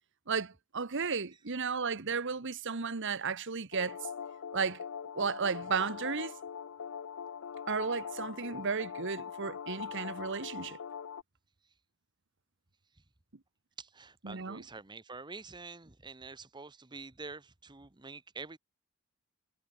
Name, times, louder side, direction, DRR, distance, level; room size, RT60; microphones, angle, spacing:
voice 1, 0.3-4.1 4.5-4.8 5.1-6.3 7.7-10.8 14.2-14.6, right 5 dB, 60° right, 1.2 m, -34 dB
sound 1, 3.7-11.2, left 7 dB, 70° left, 0.5 m, -42 dB
voice 2, 13.8-18.6, right 4 dB, 20° right, 1.1 m, -47 dB
head